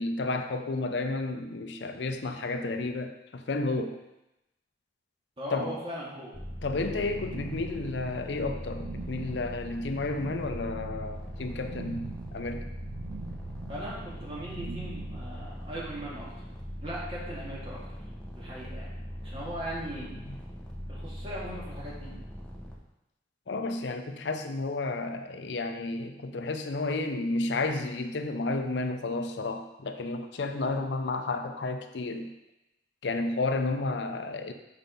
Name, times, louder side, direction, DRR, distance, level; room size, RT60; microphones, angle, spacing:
voice 1, 0.0-4.0 5.5-5.7 6.6-12.1 12.3-12.7 20.3-20.4 23.5-32.3 33.0-34.5, left 3 dB, 75° left, 6 dB, 0.6 m, -32 dB
voice 2, 5.4-6.4 13.7-16.3 16.8-18.0 18.4-18.9 19.2-20.1 20.9-22.1, right 1 dB, 30° right, -6 dB, 2.0 m, -39 dB
sound 1, 6.3-22.8, equal, 5° left, 0.9 m, -41 dB
sound 2, 6.9-15.5, right 3 dB, 80° right, 0.5 m, -43 dB
5.9 x 4.7 x 5.3 m, 0.94 s
head